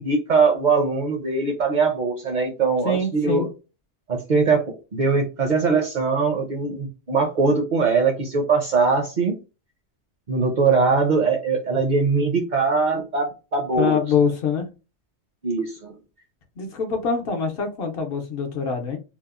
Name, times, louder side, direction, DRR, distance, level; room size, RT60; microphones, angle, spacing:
voice 1, 0.0-3.5 4.1-9.3 10.3-14.0 15.4-15.9, right 4 dB, 50° right, 2 dB, 0.6 m, -21 dB
voice 2, 2.8-3.5 13.7-14.7 16.6-19.0, left 5 dB, 65° left, 2 dB, 0.8 m, -24 dB
2.8 x 2.0 x 2.3 m, 0.31 s
omnidirectional pair, 1.1 m